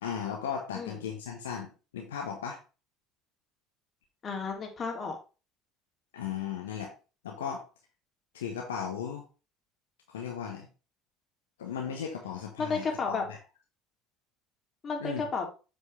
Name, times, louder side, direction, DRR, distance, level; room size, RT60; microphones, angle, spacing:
voice 1, 0.0-2.6 6.1-6.9 7.2-7.6 8.3-9.2 10.1-10.7 11.6-13.4 15.0-15.2, left 7 dB, 75° left, 1 dB, 1.2 m, -36 dB
voice 2, 4.2-5.2 12.6-13.2 14.8-15.5, left 4 dB, 35° left, 2 dB, 2.8 m, -32 dB
7.7 x 6.2 x 3.3 m, 0.32 s
figure-of-eight pair, 60°, 0 cm